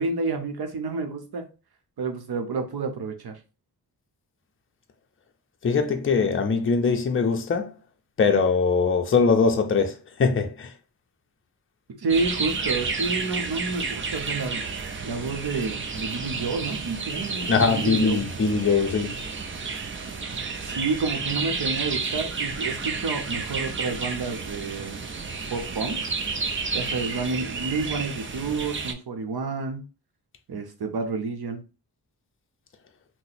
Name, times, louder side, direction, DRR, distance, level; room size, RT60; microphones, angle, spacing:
voice 1, 0.0-1.4 2.0-3.4 12.0-14.6 15.0-18.2 20.2-20.3 20.6-25.0 25.5-26.0 26.7-29.9 30.5-31.6, right 4 dB, 70° right, 0.8 m, -29 dB
voice 2, 5.6-7.7 8.2-10.7 17.5-19.2, left 5 dB, 30° left, 0.5 m, -22 dB
sound 1, 12.1-28.9, right 4 dB, 30° right, 0.4 m, -31 dB
2.8 x 2.1 x 4.0 m
wide cardioid pair, 100°, 40 cm